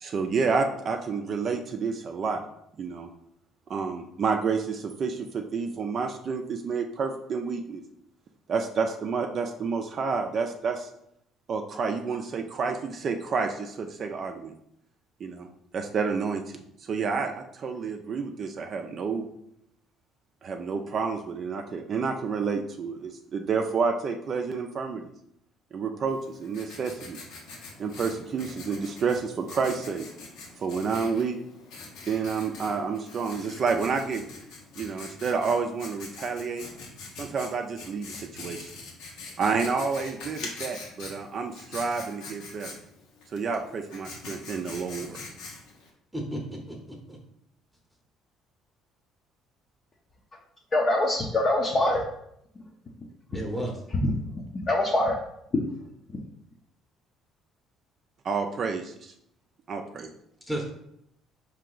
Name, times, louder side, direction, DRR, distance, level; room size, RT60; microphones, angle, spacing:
voice 1, 0.0-2.4 2.8-3.1 3.7-7.8 8.5-10.9 11.5-14.5 15.2-15.5 15.7-19.3 20.4-25.1 25.7-27.2 27.8-30.0 30.6-31.4 32.1-34.2 34.8-36.7 37.2-38.7 39.4-42.8 43.3-45.2 58.2-59.1 59.7-60.1, right 5 dB, 45° right, 5 dB, 0.4 m, -29 dB
Writing, 26.1-45.9, left 3 dB, 80° left, 1.0 m, -44 dB
voice 2, 46.1-47.2 53.3-53.8 60.5-60.7, right 1 dB, 5° right, 0 dB, 0.8 m, -33 dB
voice 3, 50.7-52.1 53.0-53.1 53.9-54.1 54.5-55.2 55.5-55.7 56.1-56.2, left 1 dB, 30° left, -1 dB, 0.6 m, -24 dB
4.5 x 2.8 x 3.8 m, 0.74 s
cardioid pair, 110°, 0 cm